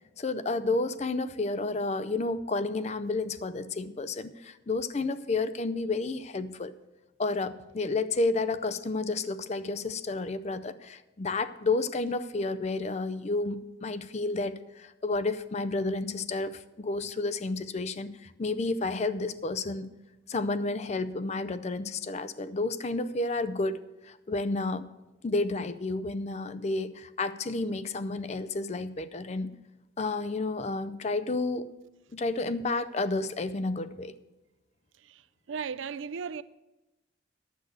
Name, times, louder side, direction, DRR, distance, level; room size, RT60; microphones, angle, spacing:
voice 1, 0.2-6.7 7.2-19.9 20.3-24.9 25.2-29.6 30.0-31.7 32.1-34.1, left 3 dB, 35° left, 0.4 m, -31 dB
voice 2, 35.5-36.4, right 6 dB, 75° right, 0.4 m, -36 dB
10.0 x 7.9 x 6.4 m
head